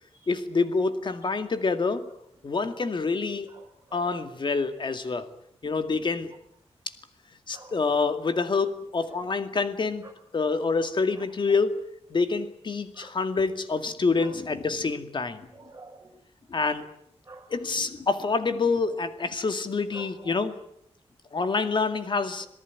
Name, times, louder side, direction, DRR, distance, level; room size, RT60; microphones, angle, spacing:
voice 1, 0.3-2.1 2.4-3.5 3.9-5.3 5.6-6.3 7.5-10.1 10.3-11.8 12.1-15.5 16.5-16.9 17.5-20.5 21.3-22.5, left 4 dB, 45° left, 9 dB, 2.2 m, -27 dB
voice 2, 3.5-4.2 7.5-7.8 10.0-10.1 11.1-11.3 12.9-13.1 14.2-14.3 15.5-16.1 17.3-17.5 19.9-20.4, right 3 dB, 25° right, 1 dB, 5.5 m, -48 dB
27.0 x 18.5 x 9.5 m, 0.72 s
wide cardioid pair, 160°, 11 cm